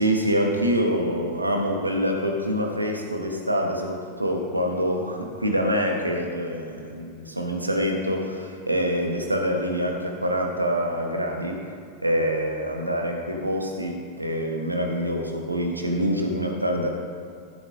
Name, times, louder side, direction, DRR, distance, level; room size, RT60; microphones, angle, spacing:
voice 1, 0.0-11.6 12.0-16.9, equal, 85° right, 2 dB, 1.2 m, -25 dB
14.0 x 9.0 x 2.7 m, 2.4 s
figure-of-eight pair, 85°, 0 cm